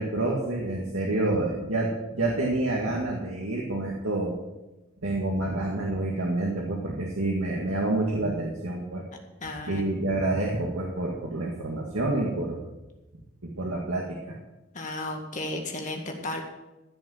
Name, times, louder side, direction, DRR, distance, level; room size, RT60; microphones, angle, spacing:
voice 1, 0.0-4.3 5.0-9.0 9.7-12.6 13.6-14.4, right 2 dB, 80° right, -2 dB, 2.0 m, -28 dB
voice 2, 9.4-9.8 14.7-16.4, left 2 dB, 35° left, 2 dB, 1.9 m, -34 dB
15.5 x 6.2 x 7.4 m, 1.0 s
head